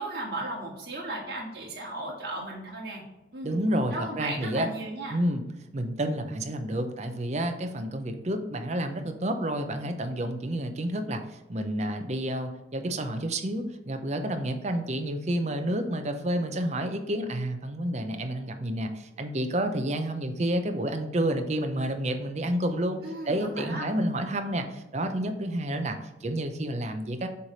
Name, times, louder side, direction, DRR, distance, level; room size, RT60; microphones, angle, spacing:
voice 1, 0.0-3.0 3.3-3.6 3.9-5.2 23.0-23.9, right 2 dB, 60° right, -3 dB, 1.9 m, -35 dB
voice 2, 3.4-4.7 5.1-5.4 5.7-23.0 23.3-27.3, right 1 dB, 40° right, 6 dB, 0.6 m, -30 dB
6.9 x 3.2 x 5.1 m, 1.0 s
head